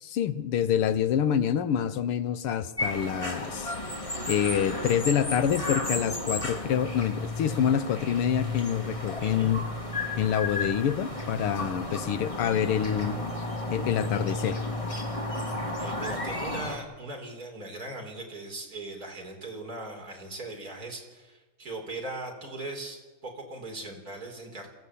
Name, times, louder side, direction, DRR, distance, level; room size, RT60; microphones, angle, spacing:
voice 1, 0.0-3.7 4.3-9.6 10.2-13.2 13.7-14.6, left 9 dB, 85° left, 12 dB, 1.9 m, -27 dB
sound 1, 2.8-16.8, left 2 dB, 15° left, 2.4 m, -33 dB
voice 2, 9.2-9.5 15.8-24.7, right 2 dB, 40° right, 1 dB, 4.6 m, -39 dB
26.0 x 15.5 x 8.5 m, 1.2 s
omnidirectional pair, 2.4 m